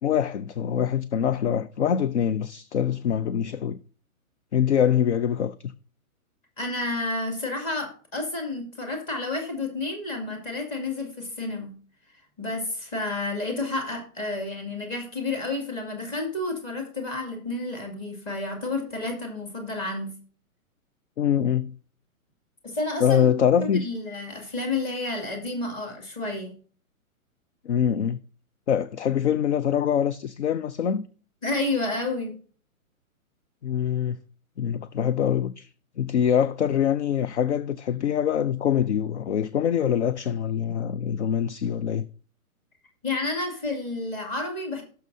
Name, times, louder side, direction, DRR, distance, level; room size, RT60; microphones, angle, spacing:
voice 1, 0.0-3.8 4.5-5.5 21.2-21.7 23.0-23.8 27.6-28.2 28.7-31.1 33.6-34.2 34.6-35.7 36.0-42.1, left 8 dB, 55° left, 0.5 m, -24 dB
voice 2, 6.6-11.8 12.4-20.1 22.6-23.3 23.6-26.5 31.4-32.4 43.0-44.8, left 2 dB, 20° left, 2.4 m, -30 dB
17.5 x 6.6 x 2.7 m
hypercardioid pair, 165°, 43 cm